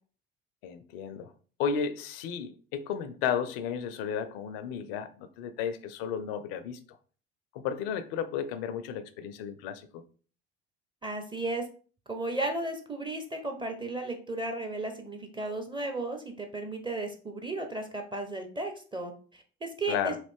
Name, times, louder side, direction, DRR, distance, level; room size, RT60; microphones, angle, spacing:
voice 1, 0.6-1.3 1.6-7.0 7.5-10.0 19.9-20.2, left 7 dB, 60° left, 0.5 m, -33 dB
voice 2, 11.0-11.7 12.1-20.1, right 2 dB, 15° right, 0.7 m, -34 dB
3.1 x 2.6 x 3.5 m
figure-of-eight pair, 55°, 32 cm